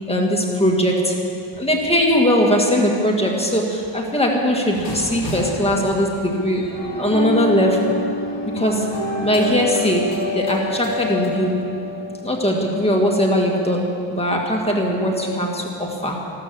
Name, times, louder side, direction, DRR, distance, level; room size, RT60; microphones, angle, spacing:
voice 1, 0.1-1.1 1.6-6.7 7.0-7.9 8.4-8.9 9.2-10.1 10.3-11.6 12.2-16.2, equal, 10° left, -1 dB, 1.9 m, -20 dB
sound 1, 4.7-11.2, equal, 45° left, 3.2 m, -36 dB
sound 2, 6.7-12.7, left 2 dB, 75° left, 4.9 m, -27 dB
14.5 x 13.0 x 7.0 m, 2.5 s
wide cardioid pair, 135°, 49 cm